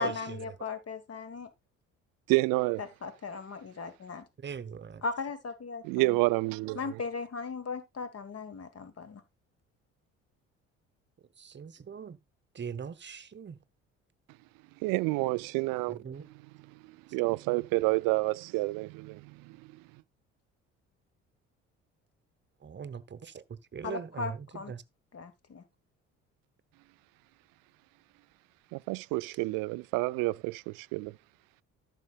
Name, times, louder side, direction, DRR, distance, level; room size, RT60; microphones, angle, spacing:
voice 1, 0.0-1.5 2.8-4.3 5.0-6.2 6.7-9.2 23.8-24.7 25.1-25.6, left 4 dB, 40° left, 1.6 m, -37 dB
voice 2, 2.3-2.8 5.8-6.8 14.8-15.9 17.1-19.6 28.7-31.1, right 23 dB, 65° right, 0.5 m, -29 dB
voice 3, 4.4-5.0 11.4-12.2 12.5-13.6 15.9-16.3 22.6-23.4 23.7-24.4 24.7-24.8, right 7 dB, 30° right, 0.9 m, -40 dB
14.0 x 6.5 x 2.4 m
hypercardioid pair, 55°, 37 cm